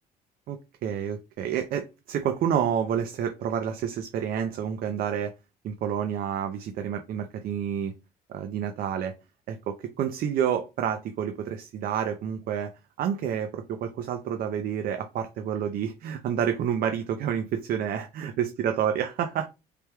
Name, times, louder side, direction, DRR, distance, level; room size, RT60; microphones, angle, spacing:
voice 1, 0.5-5.3 5.6-7.9 8.3-9.1 9.5-19.5, right 8 dB, 60° right, 7 dB, 0.5 m, -29 dB
4.5 x 3.3 x 2.2 m, 0.26 s
cardioid pair, 110°, 17 cm